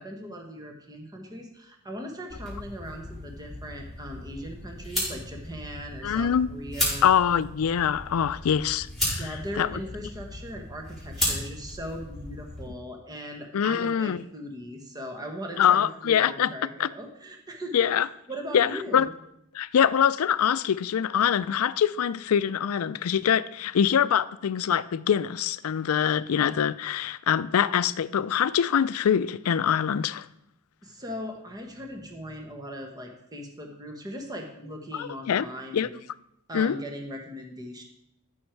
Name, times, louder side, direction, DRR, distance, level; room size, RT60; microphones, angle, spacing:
voice 1, 0.0-7.1 9.2-17.9 18.3-19.1 30.8-36.0 36.5-37.8, equal, 20° right, 1.3 m, -39 dB
sound 1, 2.3-12.7, left 1 dB, ahead, 4.8 m, -34 dB
voice 2, 6.0-6.5 7.0-9.3 9.6-9.8 13.5-14.2 15.6-16.5 16.8-16.9 17.7-18.1 18.5-19.1 19.5-30.3 34.9-35.5 35.7-35.9 36.5-36.8, left 8 dB, 80° left, 0.4 m, -24 dB
14.0 x 6.4 x 4.5 m
head